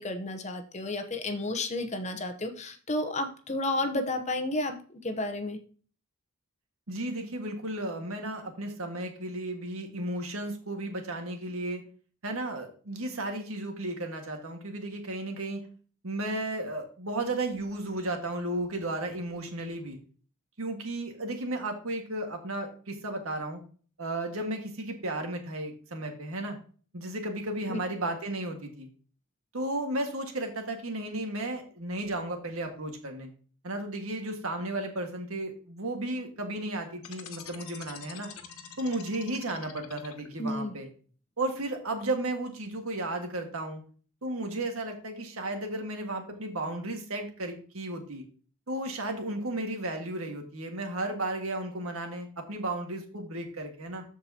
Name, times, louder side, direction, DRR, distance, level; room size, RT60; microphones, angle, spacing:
voice 1, 0.0-5.6 27.7-27.8 40.4-40.7, left 2 dB, 30° left, 7 dB, 0.9 m, -32 dB
voice 2, 6.9-11.8 12.2-15.6 16.0-20.0 20.6-23.6 24.0-26.6 26.9-28.9 29.5-33.3 33.6-38.3 38.8-40.9 41.4-43.9 44.2-48.2 48.7-54.0, right 1 dB, 75° right, 4 dB, 1.8 m, -34 dB
sound 1, 37.0-40.5, left 7 dB, 80° left, 1.1 m, -46 dB
13.5 x 4.8 x 2.9 m, 0.41 s
head